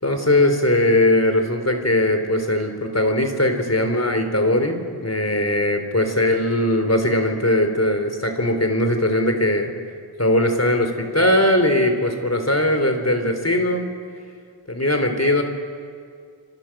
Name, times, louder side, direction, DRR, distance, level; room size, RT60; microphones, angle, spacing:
voice 1, 0.0-9.7 10.2-13.9 14.7-15.4, left 1 dB, 35° left, 6 dB, 4.1 m, -20 dB
27.5 x 26.5 x 7.7 m, 2.2 s
wide cardioid pair, 45°, 45 cm